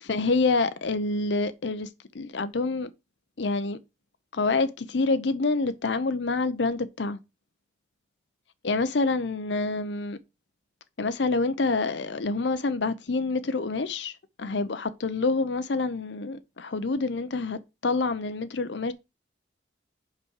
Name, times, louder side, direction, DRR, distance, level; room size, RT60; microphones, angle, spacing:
voice 1, 0.1-1.9 2.1-2.9 3.4-3.8 4.3-7.2 8.6-10.2 11.0-14.1 14.4-18.9, left 3 dB, 70° left, 0.7 m, -27 dB
5.4 x 5.0 x 6.4 m
head